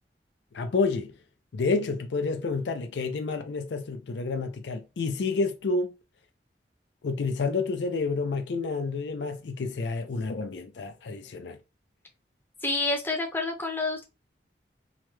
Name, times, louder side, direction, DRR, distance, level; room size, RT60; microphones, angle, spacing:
voice 1, 0.5-1.1 1.5-5.9 7.0-11.6, left 4 dB, 85° left, 0.4 m, -29 dB
voice 2, 12.6-14.0, left 3 dB, 10° left, 0.6 m, -28 dB
2.9 x 2.2 x 3.0 m
head